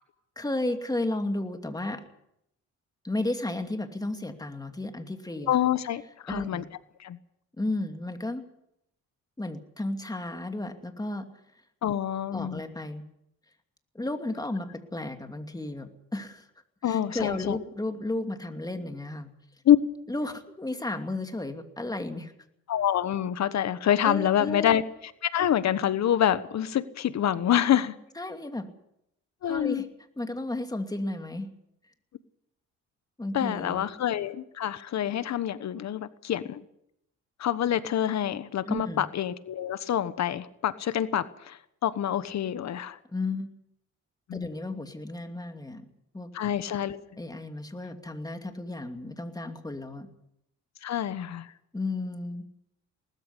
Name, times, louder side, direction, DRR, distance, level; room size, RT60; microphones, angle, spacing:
voice 1, 0.4-2.0 3.0-5.6 6.3-6.7 7.6-8.4 9.4-11.3 12.3-13.0 13.9-16.5 16.8-19.3 20.1-22.3 24.0-24.8 28.2-28.7 29.4-29.9 30.2-31.5 33.2-33.9 38.7-39.0 43.1-43.5 44.3-45.8 46.1-46.3 47.2-50.1 51.7-52.5, left 2 dB, 10° left, 6 dB, 2.6 m, -33 dB
voice 2, 5.5-6.6 7.0-7.2 11.8-12.6 16.8-17.6 19.6-19.8 22.7-24.8 25.3-27.9 29.4-29.9 33.3-36.6 37.4-43.0 44.3-44.5 46.3-47.0 50.8-51.5, left 10 dB, 60° left, 14 dB, 1.3 m, -26 dB
19.5 x 14.0 x 9.8 m, 0.78 s
cardioid pair, 90°, 30 cm